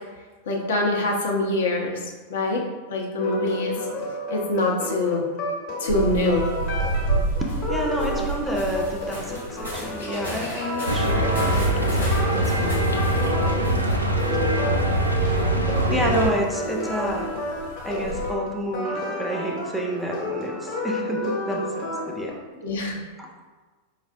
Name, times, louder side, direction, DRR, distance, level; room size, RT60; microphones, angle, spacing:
voice 1, 0.5-2.0 2.3-2.6 2.9-3.7 4.3-5.3 5.8-6.5 22.6-23.0, left 2 dB, 60° left, -1 dB, 0.6 m, -24 dB
sound 1, 3.2-22.3, left 2 dB, 40° left, 0.9 m, -31 dB
sound 2, 5.9-18.3, right 2 dB, 90° left, 0.9 m, -32 dB
voice 2, 7.4-12.8 13.4-13.7 14.3-15.6 15.9-17.3 17.8-22.3 23.2-23.3, equal, 5° right, 0 dB, 0.4 m, -30 dB
sound 3, 10.9-16.3, right 1 dB, 85° right, 0.3 m, -22 dB
5.0 x 2.0 x 2.5 m, 1.3 s
figure-of-eight pair, 90°, 0 cm